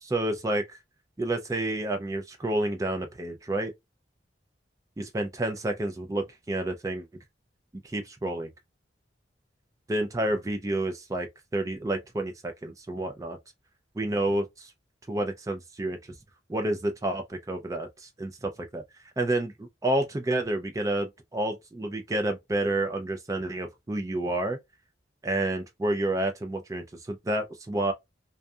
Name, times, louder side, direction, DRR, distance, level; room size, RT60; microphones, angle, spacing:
voice 1, 0.0-0.6 1.2-3.7 5.0-7.1 7.9-8.5 9.9-11.3 11.5-13.4 14.0-14.7 15.1-16.0 16.5-18.8 19.2-19.5 19.8-24.6 25.2-27.9, right 1 dB, 20° right, 0.3 m, -29 dB
2.6 x 2.3 x 2.2 m
head